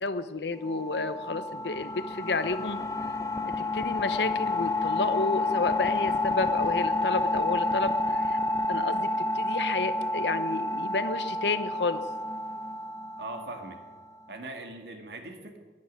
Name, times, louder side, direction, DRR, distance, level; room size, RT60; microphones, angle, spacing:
voice 1, 0.0-2.8 3.4-8.4 8.7-12.0, left 3 dB, 75° left, 12 dB, 0.9 m, -31 dB
sound 1, 0.6-14.1, left 2 dB, 15° left, 0.7 m, -29 dB
voice 2, 13.2-13.8 14.3-15.6, right 2 dB, 70° right, 4 dB, 2.2 m, -40 dB
11.5 x 11.0 x 9.5 m, 1.5 s
head